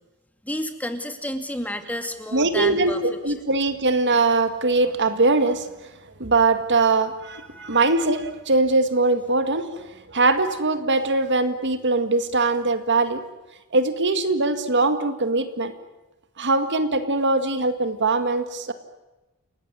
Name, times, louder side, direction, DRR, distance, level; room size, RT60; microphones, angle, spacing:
voice 1, 0.4-3.0 7.4-7.8, left 1 dB, 5° left, 7 dB, 2.4 m, -31 dB
voice 2, 2.3-5.9 6.2-13.2 13.7-15.7 16.4-18.7, right 3 dB, 55° right, 9 dB, 2.1 m, -22 dB
29.5 x 18.0 x 9.7 m, 1.1 s
head